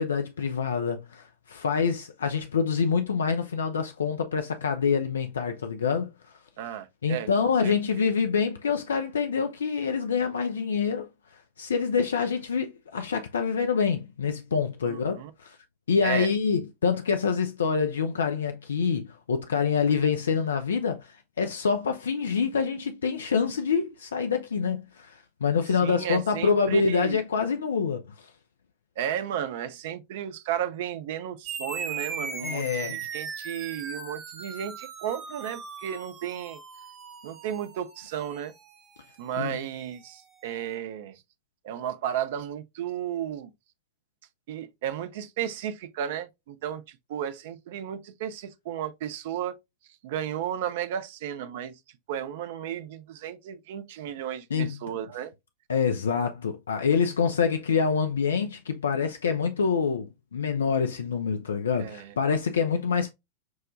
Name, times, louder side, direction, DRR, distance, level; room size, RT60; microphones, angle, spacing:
voice 1, 0.0-6.1 7.0-11.1 11.6-15.6 15.9-28.3 32.4-33.0 39.4-39.6 54.5-54.8 55.7-63.1, left 6 dB, 70° left, 0.4 m, -26 dB
voice 2, 6.6-8.1 14.8-15.3 16.0-16.3 25.8-27.2 29.0-36.6 37.2-38.5 39.2-41.2 41.6-43.5 44.5-49.6 50.0-51.8 52.1-55.3 61.8-62.1, right 10 dB, 55° right, 0.5 m, -34 dB
sound 1, 31.5-40.3, right 5 dB, 30° right, 1.0 m, -39 dB
6.1 x 2.1 x 2.5 m
figure-of-eight pair, 90°, 0 cm